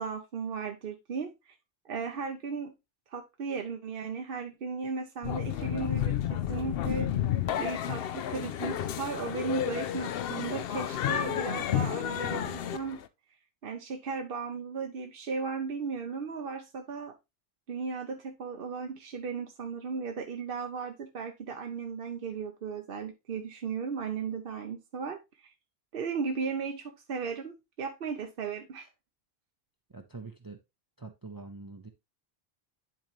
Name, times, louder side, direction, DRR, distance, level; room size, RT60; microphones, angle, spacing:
voice 1, 0.0-1.6 1.8-2.7 3.1-7.1 7.6-13.0 13.6-17.1 17.7-25.5 25.9-28.9, right 5 dB, 65° right, 0.9 m, -36 dB
sound 1, 5.2-13.0, left 10 dB, 75° left, 0.8 m, -31 dB
voice 2, 29.9-30.6 31.0-31.9, right 3 dB, 25° right, 0.6 m, -44 dB
10.5 x 3.9 x 3.0 m
omnidirectional pair, 1.0 m